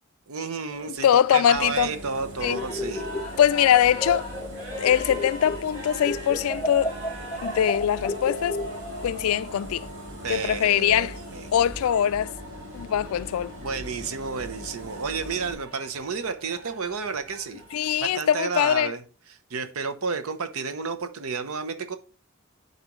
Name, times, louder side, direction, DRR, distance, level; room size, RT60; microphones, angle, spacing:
voice 1, 0.3-3.1 10.2-11.5 13.6-19.0 19.3-22.0, right 5 dB, 85° right, 0.8 m, -31 dB
sound 1, 0.7-18.2, equal, 40° right, 3.1 m, -42 dB
voice 2, 1.0-1.9 2.4-2.6 3.4-4.2 4.8-6.9 7.4-8.6 9.0-9.9 10.3-11.1 11.5-12.3 12.7-13.5 17.7-18.9, left 10 dB, 85° left, 0.3 m, -22 dB
Engine, 1.5-15.5, equal, 60° right, 2.1 m, -41 dB
sound 2, 2.5-5.7 6.0-9.0, left 1 dB, 10° left, 0.5 m, -33 dB
11.0 x 4.1 x 3.1 m
head